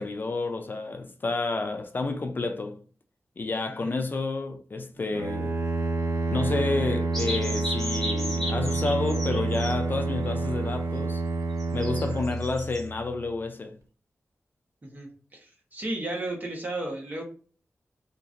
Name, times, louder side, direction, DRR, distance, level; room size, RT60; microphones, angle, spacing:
voice 1, 0.0-2.8 3.4-5.5 6.3-11.2 11.7-13.8, left 3 dB, 40° left, 0.4 m, -30 dB
Bowed string instrument, 5.1-13.1, right 3 dB, 70° right, 0.5 m, -28 dB
sound 1, 7.1-9.7 11.6-12.8, left 1 dB, 5° left, 1.0 m, -35 dB
voice 2, 14.8-17.2, right 2 dB, 35° right, 1.1 m, -34 dB
2.8 x 2.6 x 2.4 m
wide cardioid pair, 95°, 5 cm